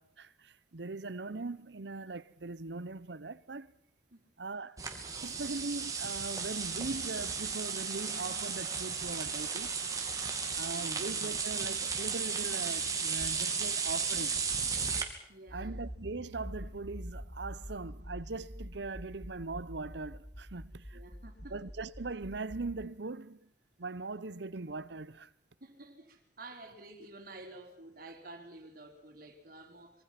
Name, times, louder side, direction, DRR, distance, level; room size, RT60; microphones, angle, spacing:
voice 1, 0.0-3.7 4.4-4.8 5.2-9.7 10.6-14.4 15.5-21.0 21.5-23.4 23.8-25.3, right 3 dB, 70° right, 0.9 m, -40 dB
sound 1, 4.8-15.0, right 5 dB, 20° right, 2.6 m, -34 dB
voice 2, 10.6-11.0 15.3-15.7 20.9-21.6 25.6-30.0, right 2 dB, 50° right, 4.1 m, -50 dB
Accelerating revving vroom, 15.5-22.7, equal, 45° left, 5.7 m, -45 dB
25.5 x 23.5 x 6.0 m
head